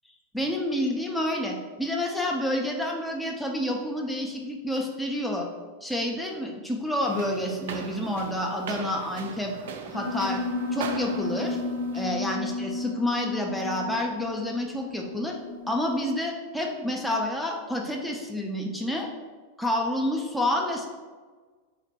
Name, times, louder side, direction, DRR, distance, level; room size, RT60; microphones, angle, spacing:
voice 1, 0.3-5.5 5.8-9.5 9.9-10.4 10.7-11.6 11.9-15.4 15.7-19.1 19.6-20.9, left 1 dB, 5° left, 0 dB, 0.7 m, -29 dB
sound 1, 7.0-12.1, right 5 dB, 55° right, 0.4 m, -40 dB
Piano, 9.9-16.1, left 3 dB, 75° left, 0.7 m, -33 dB
3.9 x 2.5 x 4.5 m, 1.4 s
figure-of-eight pair, 90°, 0 cm